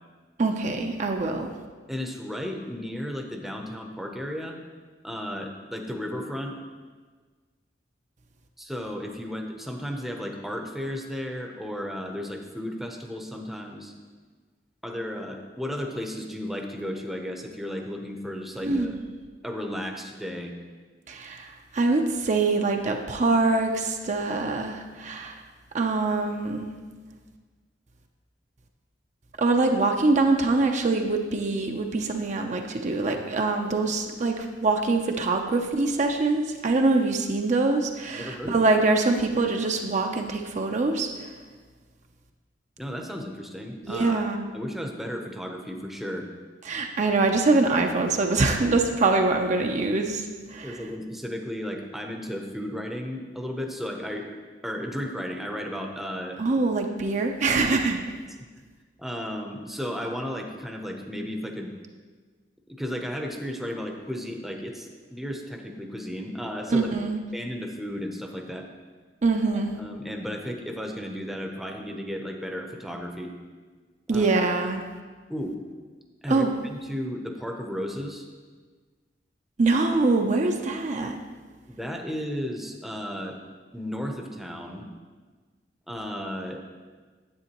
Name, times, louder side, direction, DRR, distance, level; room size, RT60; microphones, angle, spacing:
voice 1, 0.4-1.5 18.6-19.0 21.1-25.4 25.7-26.7 29.4-41.3 43.8-44.5 46.6-50.8 56.4-58.0 66.7-67.2 69.2-69.8 74.1-74.8 76.3-76.5 79.6-81.2, right 3 dB, 45° right, 3 dB, 0.5 m, -24 dB
voice 2, 1.9-4.6 5.0-6.6 8.6-13.9 14.8-18.9 19.4-20.5 38.1-38.6 42.8-44.2 44.5-46.3 50.6-54.3 54.6-56.4 59.0-61.7 62.8-66.9 67.3-68.7 69.5-73.3 74.1-74.3 75.3-75.5 76.2-78.3 81.7-83.4 83.7-84.9 85.9-86.6, equal, ahead, 2 dB, 0.7 m, -34 dB
9.6 x 8.0 x 3.0 m, 1.4 s
head